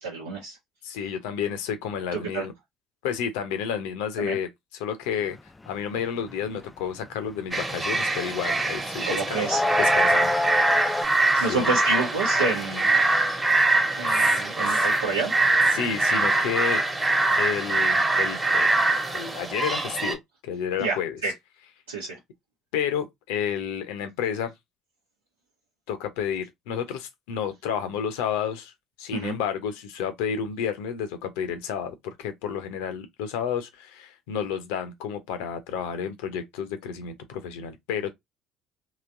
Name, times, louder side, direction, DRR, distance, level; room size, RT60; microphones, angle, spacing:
voice 1, 0.0-0.6 2.1-2.4 4.2-4.4 9.0-9.6 11.2-13.0 14.0-15.3 20.8-21.3 21.9-22.2 29.1-29.4, right 3 dB, 85° right, 0.9 m, -29 dB
voice 2, 0.8-2.5 3.0-4.5 4.8-5.4 5.7-9.4 9.8-10.3 11.3-11.7 14.1-14.4 14.7-14.8 15.7-16.8 17.3-18.7 19.1-21.2 22.7-24.5 25.9-28.7 29.0-38.1, left 8 dB, 70° left, 0.7 m, -31 dB
sound 1, 5.3-5.7 6.0-8.4 8.8-11.1, left 2 dB, 15° left, 0.4 m, -26 dB
sound 2, 7.5-20.1, right 2 dB, 20° right, 1.1 m, -23 dB
3.1 x 3.1 x 2.5 m
figure-of-eight pair, 55°, 0 cm